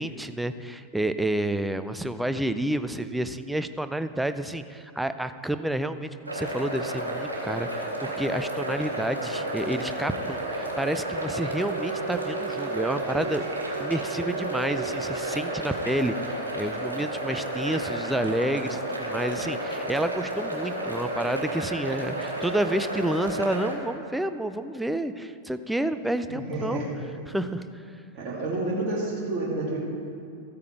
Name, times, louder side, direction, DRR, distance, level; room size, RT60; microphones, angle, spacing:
voice 1, 0.0-13.5 13.8-26.9 27.3-27.8, right 1 dB, 5° right, 11 dB, 0.5 m, -29 dB
sound 1, 6.3-23.8, right 1 dB, 80° right, 1.7 m, -32 dB
Wind instrument woodwind instrument, 11.4-15.8, right 9 dB, 55° right, 0.6 m, -38 dB
voice 2, 26.3-26.9 28.1-29.8, right 2 dB, 35° right, -4 dB, 2.5 m, -29 dB
13.5 x 8.4 x 4.6 m, 2.6 s
figure-of-eight pair, 90°, 0 cm